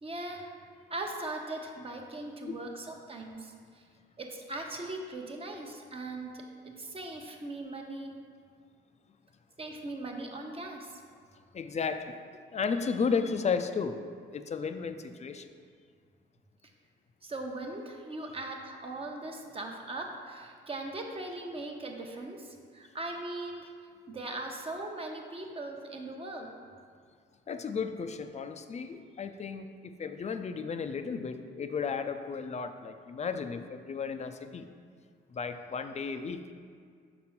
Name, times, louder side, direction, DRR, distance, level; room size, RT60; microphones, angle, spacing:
voice 1, 0.0-0.5 0.9-3.9 4.2-8.1 9.6-11.0 17.2-23.7 24.1-26.5, right 2 dB, 30° right, 2 dB, 0.9 m, -39 dB
voice 2, 11.5-12.2 12.5-14.0 14.3-15.5 27.5-34.7 35.3-36.5, left 5 dB, 35° left, 8 dB, 0.5 m, -34 dB
6.0 x 4.2 x 5.8 m, 2.1 s
cardioid pair, 90°, 20 cm